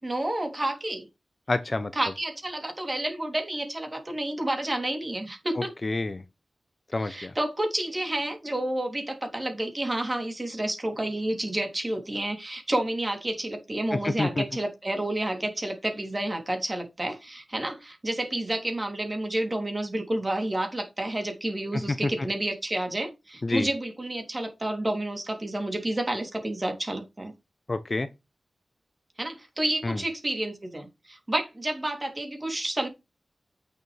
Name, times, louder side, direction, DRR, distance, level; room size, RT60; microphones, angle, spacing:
voice 1, 0.0-1.1 1.9-5.7 7.0-27.3 29.2-32.9, right 1 dB, 25° right, 3.2 m, -30 dB
voice 2, 1.5-1.9 5.6-6.2 6.9-7.3 13.9-14.4 23.4-23.7 27.7-28.1 29.8-30.0, left 2 dB, 35° left, 0.8 m, -28 dB
8.6 x 6.8 x 3.4 m
wide cardioid pair, 95°, 0 cm